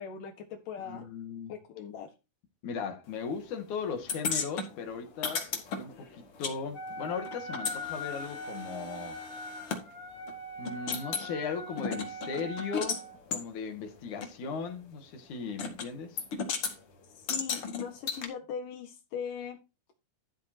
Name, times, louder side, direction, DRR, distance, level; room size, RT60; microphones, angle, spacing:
voice 1, 0.0-1.1 1.5-2.1 17.1-19.6, left 7 dB, 85° left, 3.2 m, -40 dB
voice 2, 0.8-1.5 2.6-9.2 10.6-13.0 13.3-16.2, left 5 dB, 70° left, 3.5 m, -37 dB
sound 1, 4.1-6.6 6.8-9.8 10.3-10.4 10.7-11.3 11.8-13.0 13.3-13.4 14.2-14.3 15.6-15.9 16.2-16.8 17.3-18.3, left 5 dB, 45° left, 2.6 m, -35 dB
Wind instrument woodwind instrument, 6.7-13.2, left 1 dB, 20° left, 4.1 m, -41 dB
13.0 x 7.8 x 2.9 m
omnidirectional pair, 3.7 m